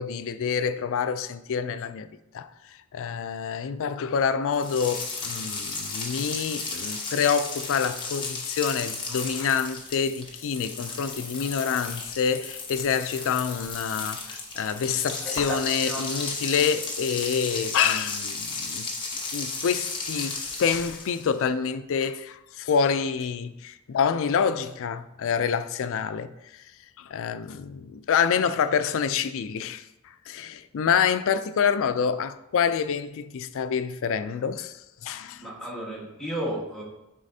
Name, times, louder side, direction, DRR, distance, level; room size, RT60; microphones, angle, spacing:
voice 1, 0.0-2.1 2.3-2.5 2.9-18.9 19.3-26.6 27.0-35.4, left 7 dB, 60° left, 0.4 m, -27 dB
sound 1, 4.5-21.3, left 3 dB, 20° left, 1.0 m, -34 dB
voice 2, 15.2-16.0 35.4-36.8, right 1 dB, ahead, 1.4 m, -33 dB
9.8 x 4.1 x 2.7 m
head